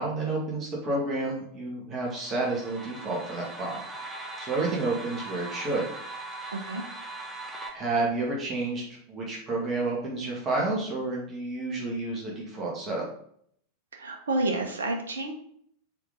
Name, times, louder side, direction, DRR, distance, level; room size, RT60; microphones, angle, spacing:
voice 1, 0.0-3.8 4.4-5.9 7.7-13.0, right 2 dB, 25° right, -3 dB, 1.9 m, -30 dB
sound 1, 2.0-7.7, right 2 dB, 10° right, 1.2 m, -40 dB
voice 2, 6.5-6.8 13.9-15.3, right 2 dB, 70° right, 3 dB, 1.0 m, -29 dB
6.7 x 4.0 x 3.8 m, 0.65 s
figure-of-eight pair, 90°, 0 cm